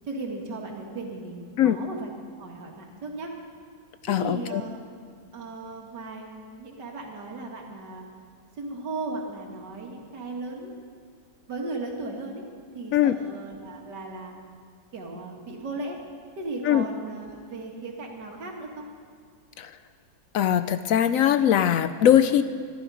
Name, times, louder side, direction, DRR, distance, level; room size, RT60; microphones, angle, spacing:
voice 1, 0.1-2.1 2.4-3.3 4.1-4.8 5.3-8.1 8.6-10.7 11.5-12.4 12.7-14.3 14.9-16.0 16.4-18.9, right 2 dB, 70° right, 1 dB, 2.6 m, -36 dB
voice 2, 4.0-4.6 12.9-13.2 16.6-16.9 19.6-19.7 20.3-22.4, left 10 dB, 75° left, 12 dB, 0.7 m, -21 dB
20.5 x 13.0 x 4.9 m, 2.1 s
omnidirectional pair, 1.9 m